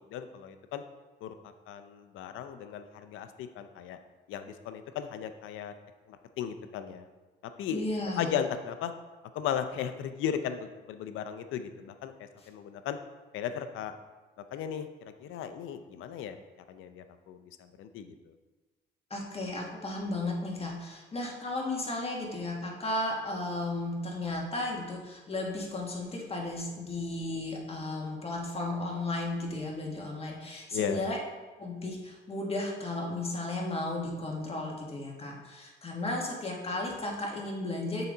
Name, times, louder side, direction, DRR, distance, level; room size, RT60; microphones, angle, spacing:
voice 1, 0.1-0.8 1.2-1.3 1.7-4.0 4.3-5.7 6.1-7.0 7.6-7.9 8.2-8.9 9.3-13.0 13.3-14.0 14.5-14.9 15.2-16.4 16.7-18.3 30.7-31.0, left 8 dB, 90° left, 9 dB, 0.6 m, -36 dB
voice 2, 7.7-8.3 19.1-31.2 31.6-38.1, left 2 dB, 30° left, -1 dB, 1.7 m, -34 dB
6.9 x 4.0 x 5.0 m, 1.2 s
cardioid pair, 90°, 20 cm